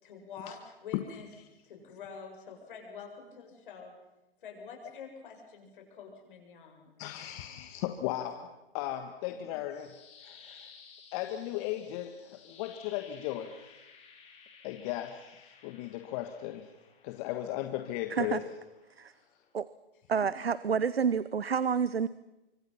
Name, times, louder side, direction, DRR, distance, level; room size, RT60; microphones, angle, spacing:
voice 1, 0.0-1.3 1.6-3.9 4.4-7.0 7.9-8.1 20.2-20.4, left 6 dB, 60° left, 2 dB, 7.4 m, -47 dB
voice 2, 7.0-8.5 8.7-10.7 11.1-13.7 14.6-16.7 17.0-18.4, left 13 dB, 35° left, 7 dB, 1.6 m, -36 dB
sound 1, 9.5-19.5, left 6 dB, 20° left, 4.4 m, -57 dB
voice 3, 20.1-22.1, right 6 dB, 90° right, 17 dB, 0.8 m, -29 dB
25.0 x 25.0 x 5.8 m, 1.0 s
hypercardioid pair, 120°, 30 cm